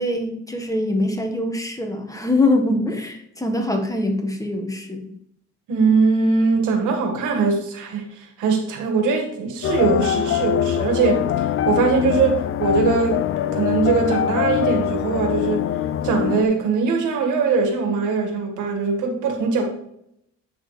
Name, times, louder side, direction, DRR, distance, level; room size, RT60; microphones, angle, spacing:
voice 1, 0.0-5.1, left 2 dB, 10° left, 1.4 m, -23 dB
voice 2, 5.7-13.2 13.5-15.6 16.0-19.6, right 4 dB, 90° right, 1.8 m, -21 dB
sound 1, 9.6-16.4, left 10 dB, 45° left, 0.4 m, -23 dB
8.9 x 6.1 x 3.2 m
cardioid pair, 90°, 30 cm